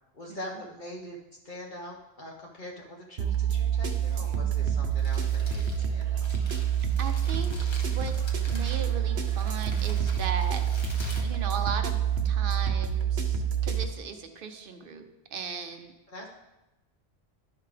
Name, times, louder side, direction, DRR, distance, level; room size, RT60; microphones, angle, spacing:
voice 1, 0.1-1.2 1.4-6.6 16.1-16.3, left 1 dB, 50° left, -2 dB, 1.1 m, -43 dB
sound 1, 3.2-13.8, right 8 dB, 85° right, 1.1 m, -27 dB
Crumpling crinkling, 4.8-12.1, left 1 dB, 25° left, 1.2 m, -46 dB
voice 2, 7.0-7.6 7.9-8.2 8.5-10.6 11.2-12.0 12.2-15.0 15.3-15.9, right 6 dB, 60° right, 7 dB, 0.9 m, -37 dB
11.5 x 5.6 x 3.3 m, 1.0 s
omnidirectional pair, 1.1 m